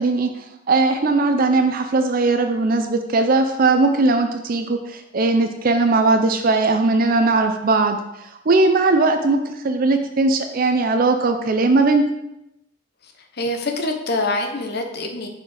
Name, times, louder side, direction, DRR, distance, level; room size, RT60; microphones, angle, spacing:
voice 1, 0.0-12.1, right 3 dB, 45° right, 6 dB, 0.5 m, -19 dB
voice 2, 13.4-15.3, left 2 dB, 55° left, 4 dB, 0.9 m, -25 dB
6.2 x 4.4 x 4.9 m, 0.86 s
head